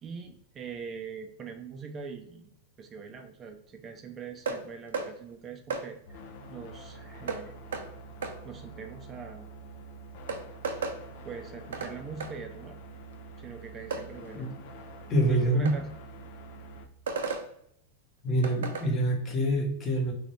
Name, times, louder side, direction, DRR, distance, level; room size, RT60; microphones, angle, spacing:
voice 1, 0.0-2.5 2.8-6.2 6.5-7.5 8.4-9.5 11.2-12.8 13.4-14.6 15.3-15.9, right 5 dB, 30° right, 5 dB, 0.4 m, -42 dB
sound 1, 4.4-4.6 4.9-5.1 5.7-5.8 7.3-7.4 7.7-7.8 8.2-8.4 9.7-9.8 10.3-11.0 11.7-11.9 12.2-12.3 13.9-14.0 15.6-15.8 17.1-17.4 18.4-18.9, right 4 dB, 80° right, 0.5 m, -33 dB
sound 2, 6.1-16.9, right 2 dB, 65° left, 0.5 m, -46 dB
voice 2, 15.1-15.7 18.2-20.1, right 1 dB, 30° left, 1 dB, 0.9 m, -26 dB
3.1 x 2.5 x 3.1 m, 0.73 s
hypercardioid pair, 110°, 0 cm